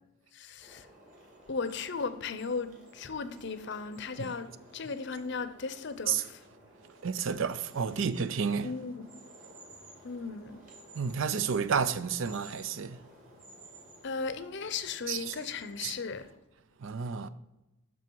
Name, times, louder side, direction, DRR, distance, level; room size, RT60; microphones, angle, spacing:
voice 1, 0.3-0.9 1.5-6.4 8.6-9.1 10.0-10.6 14.0-16.3, left 4 dB, 55° left, 0.6 m, -36 dB
sound 1, 0.6-16.3, right 1 dB, 40° right, 2.5 m, -55 dB
voice 2, 7.0-8.7 10.9-13.0 15.1-15.4 15.8-15.9 16.8-17.3, right 6 dB, 65° right, 0.5 m, -31 dB
11.0 x 5.9 x 4.6 m
head